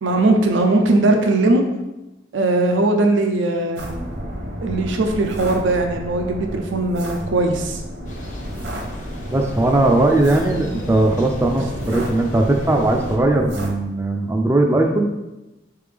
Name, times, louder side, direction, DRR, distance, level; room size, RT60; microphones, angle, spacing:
voice 1, 0.0-1.6 2.3-3.8 4.6-7.8, right 2 dB, 90° right, 4 dB, 0.5 m, -19 dB
sound 1, 3.8-13.7, equal, 65° right, 0.9 m, -32 dB
Thunder, 8.1-13.2, equal, 45° left, 0.7 m, -35 dB
voice 2, 9.3-15.1, right 2 dB, 15° right, 2 dB, 0.3 m, -18 dB
4.5 x 3.4 x 3.3 m, 0.99 s
head